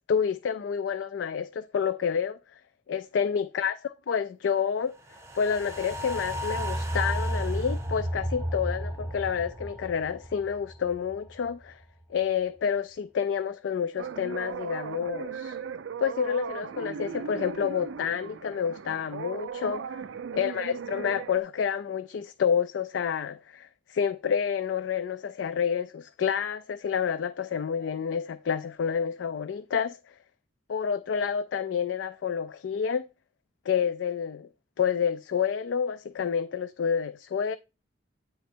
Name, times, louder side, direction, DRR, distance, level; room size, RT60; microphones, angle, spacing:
voice 1, 0.1-2.6 2.9-3.8 4.1-4.9 5.3-11.8 12.1-15.6 16.0-20.0 20.3-30.0 30.7-33.0 33.7-34.5 34.8-37.6, left 7 dB, 75° left, 0.3 m, -29 dB
sound 1, 5.1-11.5 11.8-11.9, equal, 15° right, 0.6 m, -33 dB
sound 2, 14.0-21.4, right 7 dB, 80° right, 0.4 m, -38 dB
8.9 x 3.1 x 4.3 m
head